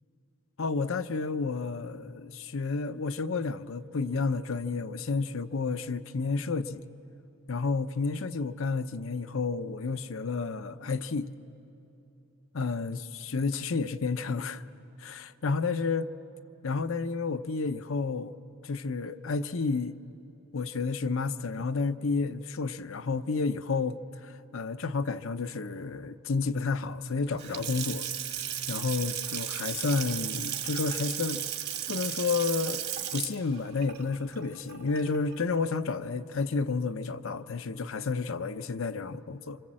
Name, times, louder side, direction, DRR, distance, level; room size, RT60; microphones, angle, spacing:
voice 1, 0.6-6.8 7.5-11.3 12.5-14.6 15.0-16.1 16.6-18.3 18.6-20.0 20.5-28.1 28.7-31.4 31.9-32.8 33.1-39.6, left 4 dB, 65° left, 0.7 m, -31 dB
Water tap faucet / Sink (filling or washing) / Splash splatter, 27.3-35.3, right 10 dB, 50° right, 1.6 m, -35 dB
28.5 x 26.0 x 7.6 m
head